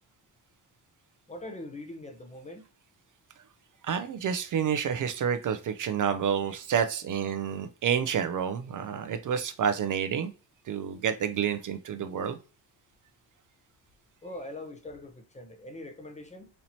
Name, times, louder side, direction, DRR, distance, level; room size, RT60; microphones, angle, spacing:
voice 1, 1.3-2.7 14.2-16.5, left 1 dB, 15° left, 0.6 m, -42 dB
voice 2, 3.8-10.3 10.7-12.4, right 8 dB, 50° right, 0.4 m, -29 dB
4.2 x 2.8 x 2.7 m
cardioid pair, 110°, 42 cm